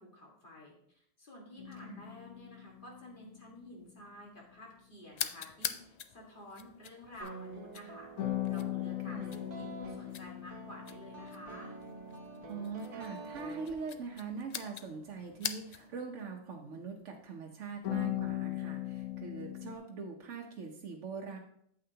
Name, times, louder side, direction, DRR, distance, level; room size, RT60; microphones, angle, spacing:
voice 1, 0.0-11.8, left 1 dB, 45° left, -2 dB, 2.1 m, -51 dB
sound 1, 1.6-3.8 8.2-13.0 17.8-19.8, left 15 dB, 85° left, 1.0 m, -39 dB
sound 2, 5.1-16.0, left 8 dB, 70° left, 0.4 m, -45 dB
sound 3, 7.2-14.3, right 3 dB, 50° right, 1.4 m, -48 dB
voice 2, 12.5-21.4, right 5 dB, 85° right, 0 dB, 1.2 m, -42 dB
8.8 x 7.8 x 2.8 m, 0.68 s
omnidirectional pair, 1.2 m